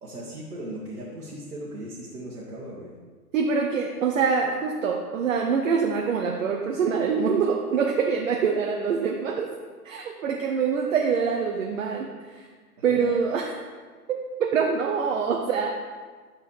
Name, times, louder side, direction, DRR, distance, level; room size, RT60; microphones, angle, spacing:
voice 1, 0.0-3.0 12.8-13.2, right 1 dB, 75° right, -6 dB, 1.4 m, -38 dB
voice 2, 3.3-9.5 9.8-12.4 12.8-13.5 14.1-15.7, right 6 dB, 55° right, 1 dB, 0.8 m, -25 dB
8.9 x 6.3 x 3.2 m, 1.5 s
figure-of-eight pair, 115°, 46 cm